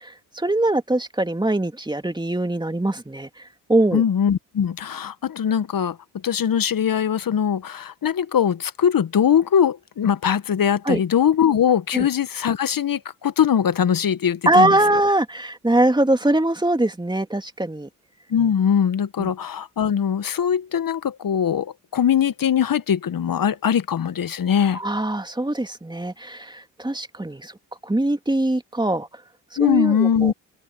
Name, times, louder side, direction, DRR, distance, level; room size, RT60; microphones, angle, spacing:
voice 1, 0.0-3.3 3.7-4.0 10.9-11.0 11.9-12.1 14.5-17.9 19.2-19.3 24.7-27.5 27.8-29.1 29.6-30.3, right 1 dB, 10° right, 2.7 m, -22 dB
voice 2, 3.9-6.0 6.2-14.8 18.3-24.8 29.6-30.3, left 8 dB, 50° left, 1.6 m, -21 dB
open air
hypercardioid pair, 50°, 45 cm